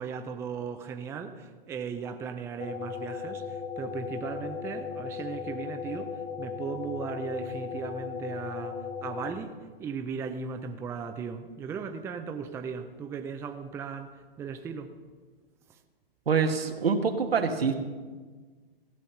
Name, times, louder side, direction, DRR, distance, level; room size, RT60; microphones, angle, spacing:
voice 1, 0.0-14.9, right 6 dB, 10° right, 7 dB, 0.4 m, -37 dB
sound 1, 2.6-9.3, left 6 dB, 20° left, 0.9 m, -37 dB
voice 2, 16.3-17.7, right 5 dB, 90° right, 5 dB, 1.4 m, -25 dB
15.5 x 5.4 x 7.7 m, 1.4 s
hypercardioid pair, 125°, 29 cm